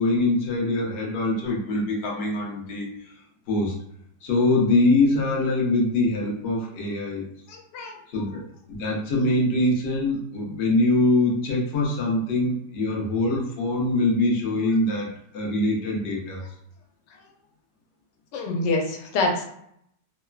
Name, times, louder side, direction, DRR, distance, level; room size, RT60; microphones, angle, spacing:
voice 1, 0.0-3.1 3.5-3.8 4.2-7.3 8.1-16.4, left 2 dB, 60° left, -2 dB, 0.7 m, -23 dB
voice 2, 7.5-8.3 18.3-19.4, left 2 dB, 90° left, 1 dB, 1.3 m, -27 dB
3.2 x 2.0 x 2.2 m, 0.71 s
omnidirectional pair, 1.8 m